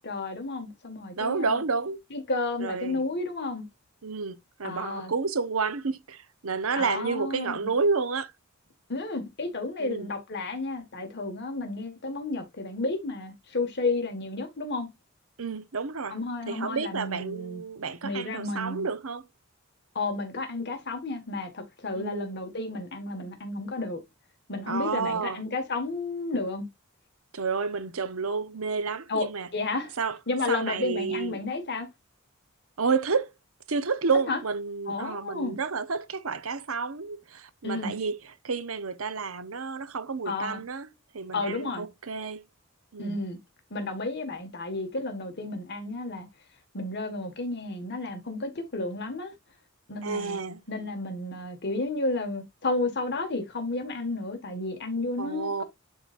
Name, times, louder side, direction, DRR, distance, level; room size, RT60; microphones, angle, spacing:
voice 1, 0.0-1.6 2.1-3.7 4.6-5.1 6.8-7.7 8.9-14.9 16.1-17.6 18.0-18.9 20.0-24.0 24.5-26.7 29.1-29.3 29.5-30.0 30.3-31.9 34.3-34.4 34.9-35.6 37.6-37.9 40.3-40.6 41.3-41.9 43.0-43.4 43.7-46.3 46.7-49.3 49.9-50.4 50.7-55.6, left 2 dB, 55° left, 1.7 m, -32 dB
voice 2, 1.2-2.0 2.6-3.0 4.0-8.3 9.8-10.1 15.4-16.2 16.5-19.2 21.9-22.3 24.7-25.4 27.3-29.5 30.0-30.2 30.5-31.4 32.8-33.3 33.7-38.1 38.4-40.9 41.1-42.4 42.9-43.2 50.0-50.6 55.2-55.6, right 4 dB, 80° right, 0.9 m, -30 dB
11.0 x 3.9 x 2.5 m
head